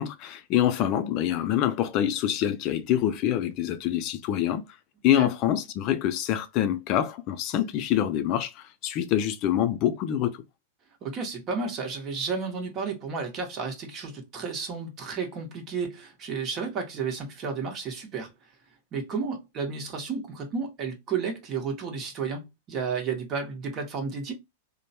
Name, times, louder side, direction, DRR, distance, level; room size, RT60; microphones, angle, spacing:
voice 1, 0.0-4.6 5.0-10.4, left 11 dB, 45° left, 0.4 m, -26 dB
voice 2, 11.0-18.3 18.9-24.3, right 5 dB, 35° right, 1.1 m, -32 dB
3.1 x 2.1 x 2.8 m
hypercardioid pair, 110°, 0 cm